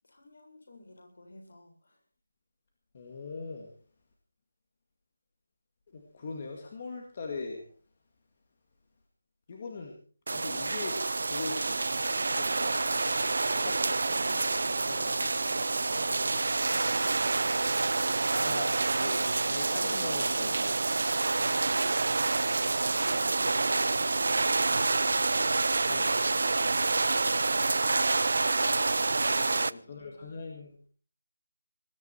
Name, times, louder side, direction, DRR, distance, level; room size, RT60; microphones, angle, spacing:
voice 1, 0.0-2.0 13.6-16.7 29.7-30.4, left 2 dB, 55° left, 3 dB, 7.4 m, -54 dB
voice 2, 2.9-3.7 5.9-7.6 9.5-9.9 10.3-12.7 13.6-13.7 14.4-14.5 14.9-15.2 17.3-17.5 18.3-21.1 25.9-26.4 29.3-30.9, left 3 dB, 25° left, 2 dB, 2.1 m, -41 dB
sound 1, 10.3-29.7, right 3 dB, 55° right, 0.6 m, -28 dB
sound 2, 11.6-27.9, right 5 dB, 25° right, 1.3 m, -47 dB
20.5 x 13.0 x 4.5 m, 0.41 s
figure-of-eight pair, 180°, 0 cm